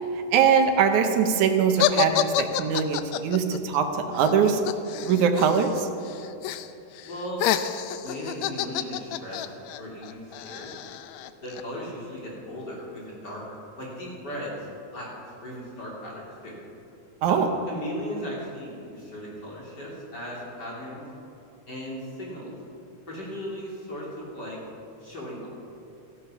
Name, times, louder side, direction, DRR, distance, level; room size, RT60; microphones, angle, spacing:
voice 1, 0.3-3.9 4.1-4.6 5.0-5.9 17.2-17.5, right 7 dB, 75° right, 6 dB, 2.3 m, -22 dB
sound 1, 1.8-5.8 6.1-6.7 7.0-11.6, left 12 dB, 75° left, 1.7 m, -28 dB
voice 2, 7.0-7.4 7.9-10.7 11.4-14.5 14.9-15.1 15.4-16.6 17.2-17.4 17.7-21.0 21.7-22.5 23.1-24.6 25.0-25.5, equal, 35° left, -4 dB, 3.6 m, -37 dB
16.5 x 14.5 x 5.8 m, 2.7 s
omnidirectional pair, 3.5 m